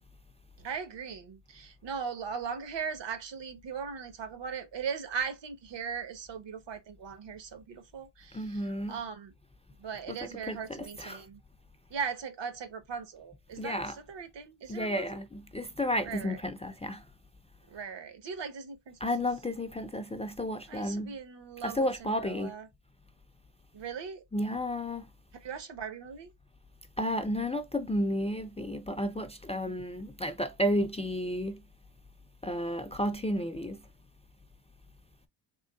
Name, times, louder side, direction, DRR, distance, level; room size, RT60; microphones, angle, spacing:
voice 1, 0.6-8.6 8.9-9.3 9.8-11.4 11.9-15.2 16.0-16.4 17.7-19.3 20.7-22.7 23.7-24.2 25.4-26.3, right 6 dB, 65° right, 1.1 m, -39 dB
voice 2, 8.3-9.0 10.1-10.2 10.4-11.2 13.6-14.0 14.7-17.0 19.0-21.2 21.6-22.5 24.3-25.1 27.0-31.6 32.4-33.8, equal, 15° left, 0.4 m, -32 dB
3.7 x 3.6 x 2.2 m
cardioid pair, 120°, 47 cm